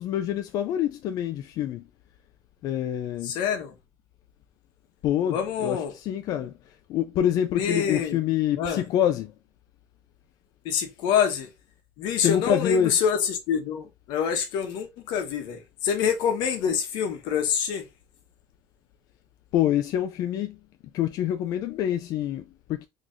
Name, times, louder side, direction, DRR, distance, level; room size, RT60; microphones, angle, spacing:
voice 1, 0.0-1.9 2.6-3.4 5.0-6.5 6.9-9.3 12.2-13.0 19.5-20.6 20.9-22.9, left 10 dB, 60° left, 0.4 m, -26 dB
voice 2, 3.2-3.7 5.3-5.9 7.5-8.2 8.6-8.8 10.6-11.5 12.0-17.8, left 7 dB, 85° left, 1.0 m, -26 dB
3.9 x 3.0 x 2.5 m
cardioid pair, 155°, 8 cm